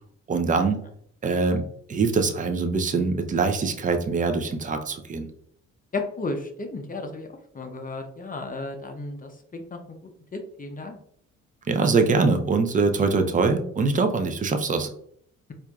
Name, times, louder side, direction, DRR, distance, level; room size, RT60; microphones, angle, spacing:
voice 1, 0.3-0.8 1.2-1.6 1.9-5.3 11.7-14.9, right 4 dB, 25° right, 6 dB, 0.5 m, -23 dB
voice 2, 5.9-7.3 7.5-9.8 10.3-11.0, left 3 dB, 30° left, 5 dB, 0.6 m, -33 dB
4.4 x 2.5 x 2.3 m, 0.64 s
cardioid pair, 90°, 30 cm